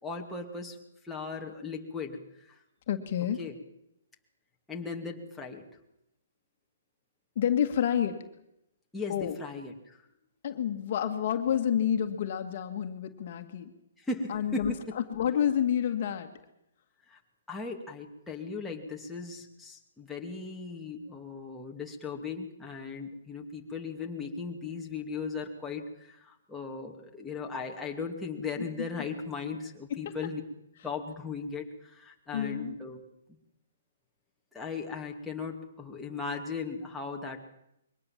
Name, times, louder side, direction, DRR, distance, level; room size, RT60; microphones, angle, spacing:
voice 1, 0.0-0.8 1.0-2.6 3.4-3.5 4.7-5.7 8.9-10.0 14.0-14.8 17.1-17.2 17.5-30.4 30.8-33.0 34.5-37.4, left 4 dB, 5° left, -1 dB, 2.5 m, -37 dB
voice 2, 2.9-3.4 7.4-8.2 9.1-9.4 10.4-13.7 14.3-16.3 28.6-28.9 29.9-30.1 32.3-32.8, left 9 dB, 50° left, 7 dB, 1.9 m, -29 dB
23.0 x 18.5 x 7.4 m, 0.81 s
hypercardioid pair, 150°, 0 cm